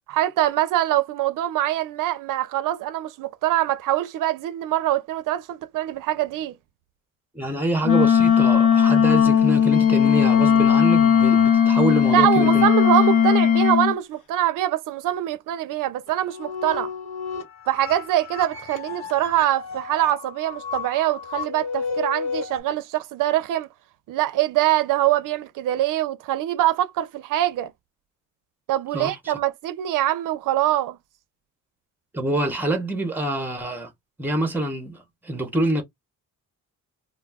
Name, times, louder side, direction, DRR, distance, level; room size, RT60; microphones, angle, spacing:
voice 1, 0.1-6.5 12.1-16.9 17.7-23.7 24.1-27.7 28.7-31.0, right 13 dB, 80° right, 0.5 m, -23 dB
voice 2, 7.3-12.7 28.9-29.1 32.1-33.9 34.2-35.8, right 1 dB, 5° right, 0.6 m, -26 dB
Wind instrument woodwind instrument, 7.8-13.9, left 8 dB, 70° left, 0.8 m, -17 dB
Wind instrument woodwind instrument 2, 9.7-13.8, left 9 dB, 30° left, 0.4 m, -35 dB
sound 1, 16.1-22.6, left 5 dB, 55° left, 1.3 m, -33 dB
2.3 x 2.2 x 3.3 m
cardioid pair, 150°, 32 cm